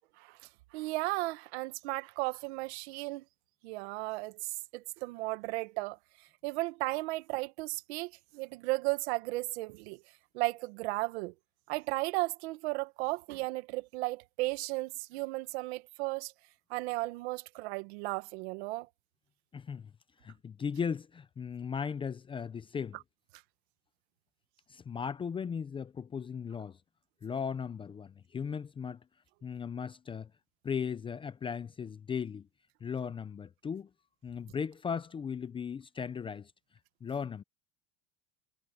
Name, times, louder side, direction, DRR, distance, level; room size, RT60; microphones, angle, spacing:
voice 1, 0.2-3.2 3.6-6.0 6.4-10.0 10.3-11.3 11.7-16.3 16.7-18.9, right 22 dB, 70° right, 1.7 m, -35 dB
voice 2, 19.5-19.9 20.2-23.0 24.7-26.8 27.2-29.0 29.4-30.3 30.6-32.5 32.8-33.9 34.2-36.5 37.0-37.4, left 6 dB, 15° left, 0.6 m, -37 dB
supercardioid pair, 140°, 34 cm